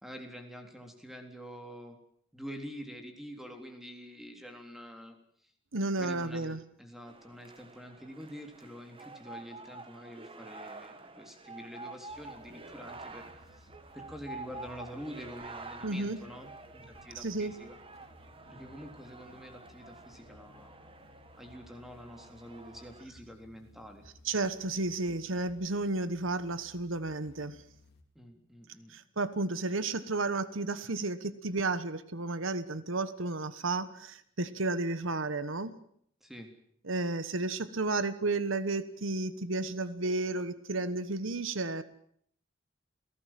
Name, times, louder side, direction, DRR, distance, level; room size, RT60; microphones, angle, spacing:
voice 1, 0.0-2.0 2.3-5.2 5.4-5.5 6.0-17.8 18.5-20.9 21.4-24.0 28.2-29.0 36.2-36.5, equal, ahead, 4 dB, 3.6 m, -47 dB
voice 2, 5.7-6.6 15.8-16.2 17.1-17.5 24.2-27.6 28.9-35.7 36.9-41.8, right 2 dB, 75° right, 14 dB, 1.3 m, -32 dB
sound 1, 7.1-23.1, right 3 dB, 25° right, 1.8 m, -49 dB
sound 2, 12.1-28.0, left 2 dB, 50° left, 3.9 m, -59 dB
28.5 x 18.0 x 7.6 m, 0.68 s
head